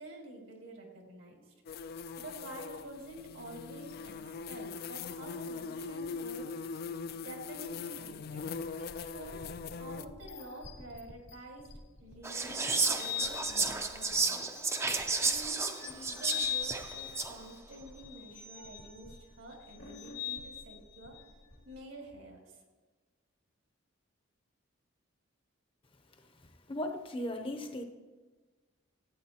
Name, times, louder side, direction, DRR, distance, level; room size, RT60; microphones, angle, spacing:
voice 1, 0.0-1.5 2.2-6.5 7.2-8.5 8.8-11.7 12.0-14.5 15.2-21.2 21.7-22.6, right 2 dB, 75° right, 1 dB, 2.0 m, -49 dB
sound 1, 1.7-10.1, left 5 dB, 50° left, 0.3 m, -41 dB
sound 2, 8.6-21.8, left 9 dB, 85° left, 2.2 m, -43 dB
Whispering, 12.2-17.4, right 4 dB, 15° right, 0.5 m, -32 dB
voice 2, 26.7-27.8, left 1 dB, 25° left, 5 dB, 0.7 m, -36 dB
14.5 x 8.4 x 2.9 m, 1.3 s
head